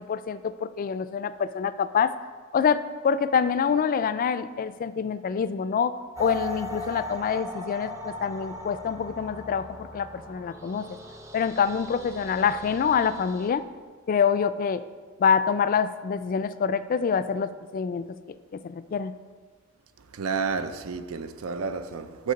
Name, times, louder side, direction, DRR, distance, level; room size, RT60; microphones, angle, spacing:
voice 1, 0.0-2.1 2.5-10.9 11.3-13.6 14.1-14.8 15.2-18.1 18.6-19.1, left 6 dB, 40° left, 0.3 m, -26 dB
sound 1, 6.1-13.5, left 1 dB, 15° right, 0.7 m, -39 dB
voice 2, 20.0-22.3, right 5 dB, 90° right, 0.5 m, -30 dB
6.6 x 6.4 x 5.2 m
head